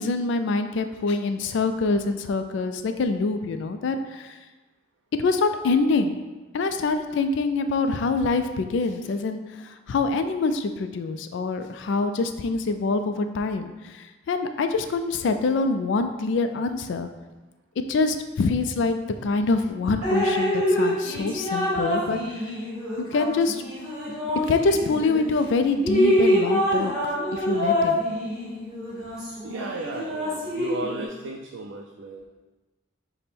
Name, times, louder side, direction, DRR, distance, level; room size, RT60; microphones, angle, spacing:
voice 1, 0.0-4.3 5.2-6.2 6.5-9.4 9.9-17.1 17.8-22.2 23.1-23.6 24.5-26.9 27.3-28.0, left 3 dB, 65° left, 8 dB, 0.3 m, -25 dB
Drip, 20.0-25.3 25.7-31.1, equal, ahead, 1.4 m, -25 dB
voice 2, 29.4-32.3, right 3 dB, 70° right, 1 dB, 0.4 m, -35 dB
5.1 x 2.1 x 4.3 m, 1.2 s
head